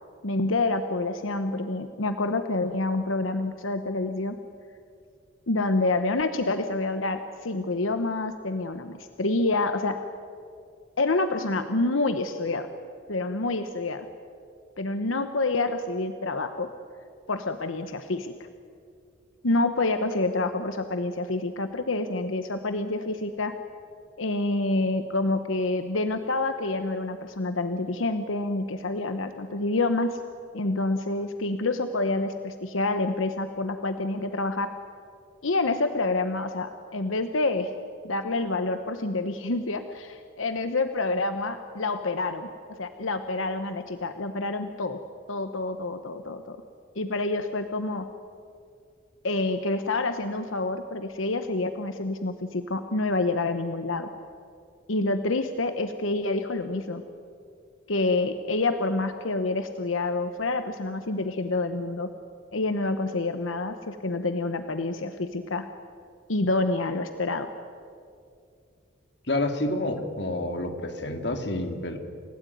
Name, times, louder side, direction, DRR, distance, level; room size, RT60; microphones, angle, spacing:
voice 1, 0.2-4.4 5.5-10.0 11.0-12.7 13.1-14.1 14.8-16.7 17.3-18.3 19.4-23.5 24.2-30.2 30.5-34.7 35.4-37.7 38.0-42.5 42.8-45.0 45.3-46.6 47.0-48.1 49.2-54.1 54.9-57.0 57.9-62.1 62.5-65.7 66.3-67.5, left 2 dB, 85° left, 8 dB, 1.1 m, -27 dB
voice 2, 69.3-72.0, left 1 dB, 55° left, 5 dB, 2.4 m, -29 dB
29.5 x 16.5 x 9.4 m, 2.4 s
head